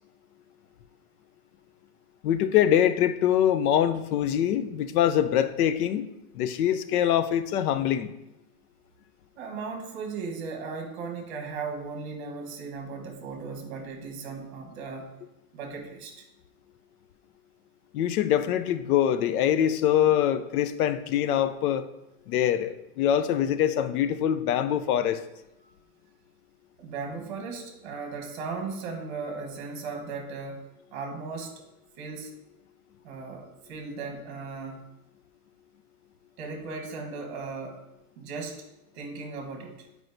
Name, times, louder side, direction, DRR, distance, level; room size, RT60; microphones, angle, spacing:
voice 1, 2.2-6.1 6.3-8.1 17.9-21.8 22.3-25.2, left 10 dB, 75° left, 12 dB, 0.6 m, -24 dB
voice 2, 9.4-15.1 15.5-16.2 25.6-25.7 26.8-30.6 30.9-31.6 32.0-32.3 33.0-34.8 36.4-37.8 38.2-38.6 38.9-39.9, right 4 dB, 45° right, 3 dB, 1.2 m, -37 dB
7.7 x 4.7 x 2.6 m, 0.91 s
supercardioid pair, 175°, 45 cm